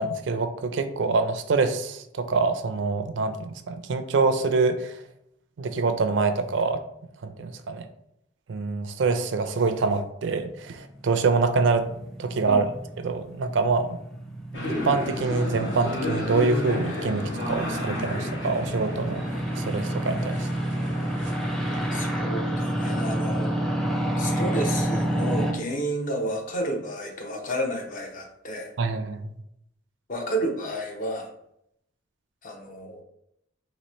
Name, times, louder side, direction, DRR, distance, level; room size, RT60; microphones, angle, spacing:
voice 1, 0.0-5.0 5.6-6.8 7.2-7.9 8.5-11.9 12.2-12.7 13.0-14.0 14.7-19.2 19.6-20.5 28.8-29.3, right 4 dB, 70° right, 9 dB, 0.4 m, -25 dB
sound 1, 10.9-25.5, right 1 dB, ahead, 0.5 m, -30 dB
sound 2, 14.5-22.2, left 1 dB, 70° left, 1.1 m, -32 dB
voice 2, 21.9-23.6 24.2-28.7 30.1-31.3 32.4-33.0, right 1 dB, 45° left, 2 dB, 0.7 m, -31 dB
3.0 x 2.9 x 4.3 m, 0.76 s
head